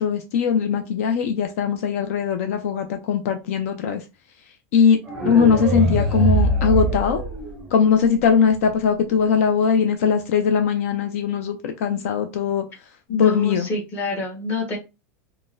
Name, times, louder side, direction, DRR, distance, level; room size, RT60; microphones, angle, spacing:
voice 1, 0.0-4.0 4.7-5.0 5.2-7.2 7.7-12.6 13.2-13.7, left 7 dB, 65° left, 0.4 m, -20 dB
sound 1, 5.1-8.1, right 2 dB, 5° right, 0.6 m, -22 dB
voice 2, 13.1-14.8, left 3 dB, 25° left, 1.2 m, -26 dB
3.7 x 2.2 x 2.5 m
supercardioid pair, 160°, 8 cm